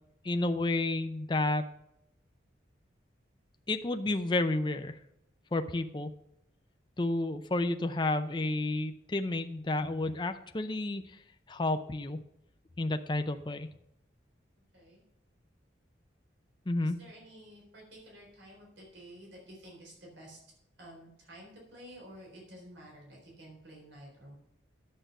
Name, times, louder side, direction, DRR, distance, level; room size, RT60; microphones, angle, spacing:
voice 1, 0.2-1.7 3.7-5.0 5.5-6.1 7.0-11.2 11.5-12.2 12.8-13.7 16.7-17.0, left 2 dB, 25° left, 8 dB, 0.5 m, -31 dB
voice 2, 16.8-20.4 20.8-24.3, right 1 dB, 75° right, -1 dB, 4.0 m, -51 dB
10.0 x 7.7 x 5.4 m, 0.82 s
head